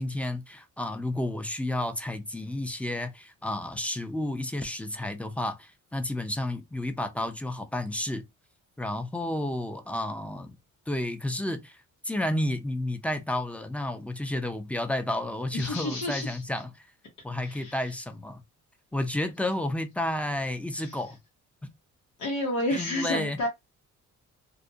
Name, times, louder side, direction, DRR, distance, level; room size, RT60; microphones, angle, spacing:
voice 1, 0.0-8.2 8.8-10.6 10.9-11.8 12.0-16.9 17.2-18.4 18.9-21.2 22.7-23.4, left 1 dB, 5° left, 0.4 m, -31 dB
voice 2, 15.5-16.4 17.4-17.9 20.7-21.0 22.2-23.5, left 1 dB, 90° left, 0.8 m, -31 dB
2.4 x 2.1 x 2.6 m
cardioid pair, 90°, 30 cm